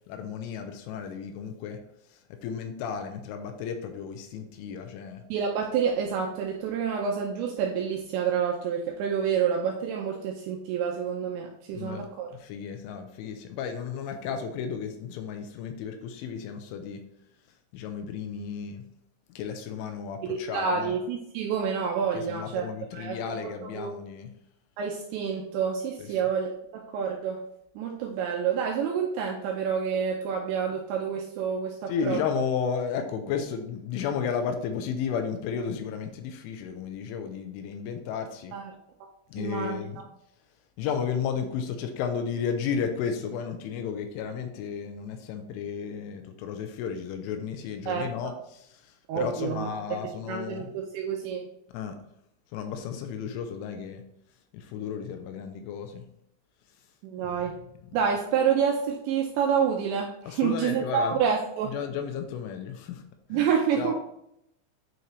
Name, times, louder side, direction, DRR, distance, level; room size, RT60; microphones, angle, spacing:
voice 1, 0.1-1.8 2.1-5.2 11.7-17.0 17.7-18.8 19.3-20.9 22.1-24.3 26.0-26.1 31.9-38.6 39.3-40.0 40.8-50.7 51.7-52.0 52.5-54.0 54.5-56.1 57.2-57.4 60.3-61.2 61.7-63.0 63.3-63.5 63.8-63.9, left 7 dB, 80° left, 6 dB, 3.1 m, -33 dB
voice 2, 5.3-12.3 20.2-22.7 22.9-23.9 24.8-27.4 27.8-32.2 38.5-38.7 39.4-39.8 47.9-48.3 49.1-49.7 50.3-51.5 57.0-57.6 57.9-61.7 63.3-63.9, right 7 dB, 80° right, 0 dB, 2.7 m, -28 dB
9.3 x 4.4 x 3.2 m, 0.77 s
omnidirectional pair, 5.8 m